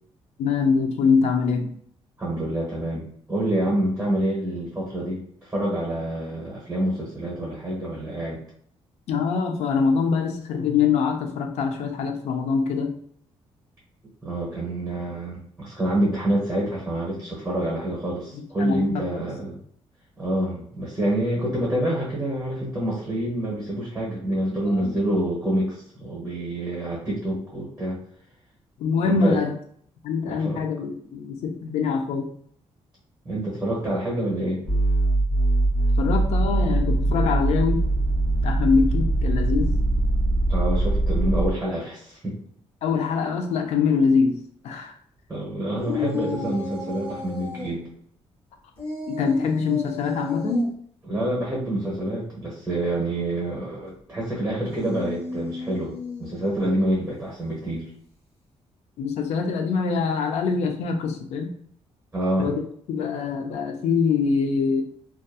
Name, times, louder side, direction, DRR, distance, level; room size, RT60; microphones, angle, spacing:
voice 1, 0.4-1.8 9.1-13.0 18.3-19.2 24.7-25.0 28.8-29.5 30.0-32.3 36.0-37.9 38.4-39.8 42.8-45.0 45.7-46.6 49.1-50.8 59.0-61.5 62.4-62.6 62.9-64.8, left 5 dB, 75° left, 0.4 m, -24 dB
voice 2, 2.2-8.4 14.2-19.6 20.2-28.0 29.0-29.4 30.3-30.6 33.2-34.6 40.5-42.4 45.3-47.9 51.1-55.9 56.2-57.8 62.1-62.5, right 1 dB, 10° right, 0.7 m, -27 dB
sound 1, 34.6-41.5, right 2 dB, 30° left, 0.8 m, -22 dB
sound 2, 45.8-47.7 48.8-50.7 54.5-56.8, left 2 dB, 55° left, 1.0 m, -34 dB
2.7 x 2.2 x 2.3 m
cardioid pair, 175°, 11 cm